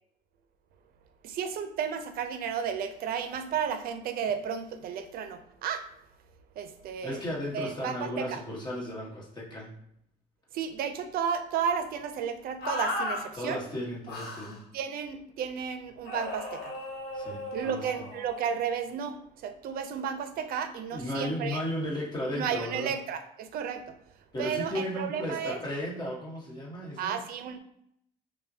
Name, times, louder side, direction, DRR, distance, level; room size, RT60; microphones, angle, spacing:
voice 1, 1.2-5.9 6.6-7.2 7.5-8.4 10.5-13.6 14.7-16.7 17.5-21.6 22.4-23.9 24.4-25.6 27.0-27.6, right 7 dB, 65° right, 9 dB, 0.5 m, -33 dB
voice 2, 7.0-9.7 13.3-14.6 17.1-18.1 20.9-22.9 24.3-27.2, left 1 dB, 25° left, -4 dB, 1.2 m, -35 dB
sound 1, 12.6-13.2 14.1-14.6 16.1-18.4, left 2 dB, 70° left, 1.1 m, -35 dB
5.3 x 2.2 x 2.7 m, 0.73 s
cardioid pair, 110°, 17 cm